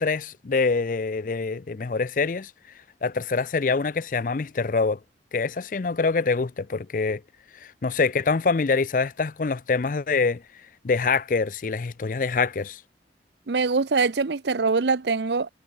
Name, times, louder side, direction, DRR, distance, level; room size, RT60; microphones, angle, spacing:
voice 1, 0.0-2.5 3.0-5.0 5.3-7.2 7.5-10.4 10.8-12.8, left 4 dB, 50° left, 0.5 m, -25 dB
voice 2, 13.5-15.5, right 4 dB, 75° right, 0.7 m, -23 dB
head